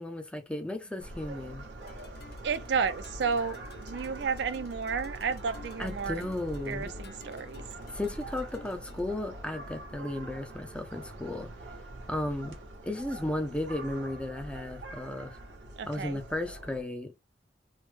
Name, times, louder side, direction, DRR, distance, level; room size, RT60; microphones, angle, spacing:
voice 1, 0.0-1.7 5.8-6.9 7.9-11.5 12.1-12.6 12.8-15.4 15.9-17.1, left 1 dB, 5° left, 0.4 m, -34 dB
sound 1, 1.0-16.8, right 1 dB, 85° right, 0.8 m, -44 dB
sound 2, 1.8-9.0, left 3 dB, 65° left, 0.7 m, -54 dB
voice 2, 2.4-6.3 6.7-7.6 15.8-16.2, right 5 dB, 70° right, 0.4 m, -32 dB
3.1 x 2.1 x 3.1 m
head